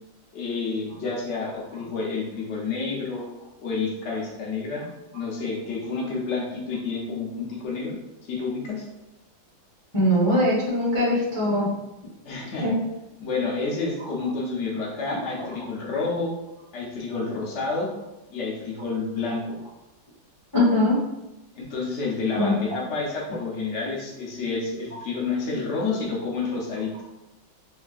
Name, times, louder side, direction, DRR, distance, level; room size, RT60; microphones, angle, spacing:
voice 1, 0.3-3.3 3.6-4.9 5.1-8.9 12.2-12.7 13.2-16.3 16.7-17.9 18.3-19.6 21.6-26.9, left 4 dB, 75° left, -3 dB, 0.6 m, -29 dB
voice 2, 9.9-11.7 12.6-12.7 15.2-15.3 20.5-21.0 22.3-22.6, left 1 dB, 25° left, -8 dB, 0.4 m, -21 dB
3.4 x 2.3 x 2.3 m, 0.97 s
omnidirectional pair, 2.1 m